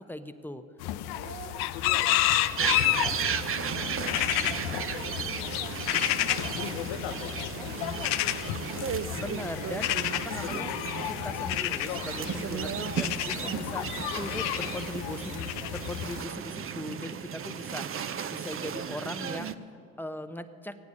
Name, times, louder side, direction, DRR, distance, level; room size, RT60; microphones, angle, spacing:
voice 1, 0.1-0.6 9.1-10.8 11.1-13.9 14.2-17.9 18.3-19.6 20.0-20.8, left 1 dB, 5° left, 10 dB, 0.8 m, -39 dB
sound 1, 0.8-16.2, left 14 dB, 65° left, 0.6 m, -31 dB
voice 2, 1.1-8.9, right 5 dB, 70° right, 2 dB, 2.0 m, -46 dB
sound 2, 2.6-19.5, right 7 dB, 35° right, 0.6 m, -35 dB
16.0 x 9.4 x 6.3 m, 2.5 s
hypercardioid pair, 55°, 40 cm